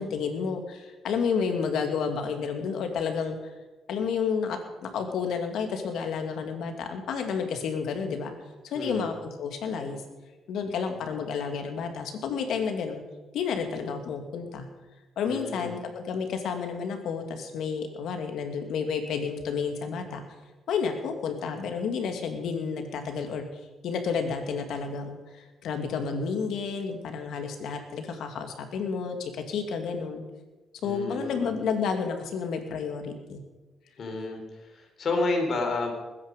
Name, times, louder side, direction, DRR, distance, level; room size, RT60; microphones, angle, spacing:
voice 1, 0.0-3.4 3.9-8.3 8.6-10.0 10.5-13.0 13.3-14.7 15.2-20.2 20.7-23.5 23.8-30.2 30.8-33.4, left 6 dB, 75° left, 5 dB, 2.3 m, -31 dB
voice 2, 8.7-9.1 11.0-11.1 15.3-15.8 30.8-31.5 34.0-35.9, left 3 dB, 50° left, 3 dB, 3.8 m, -31 dB
20.5 x 9.9 x 5.3 m, 1.2 s
cardioid pair, 90°, 0 cm